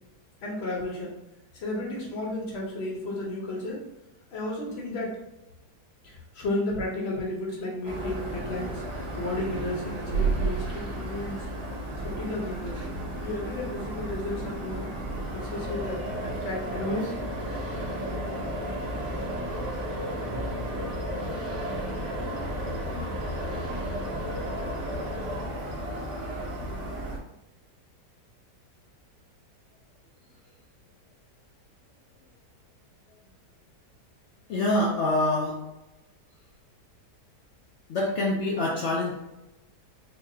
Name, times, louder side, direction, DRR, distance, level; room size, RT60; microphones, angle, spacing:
voice 1, 0.4-1.1 1.5-3.8 4.3-5.2 6.0-8.8 9.2-11.5 12.0-12.8 13.2-14.9 15.3-17.1, left 1 dB, 45° left, -2 dB, 0.9 m, -33 dB
sound 1, 7.8-27.2, right 1 dB, 75° right, 1.3 m, -33 dB
voice 2, 34.5-35.6 37.9-39.1, left 1 dB, 75° left, -3 dB, 0.6 m, -25 dB
4.6 x 2.3 x 2.6 m, 0.94 s
omnidirectional pair, 1.8 m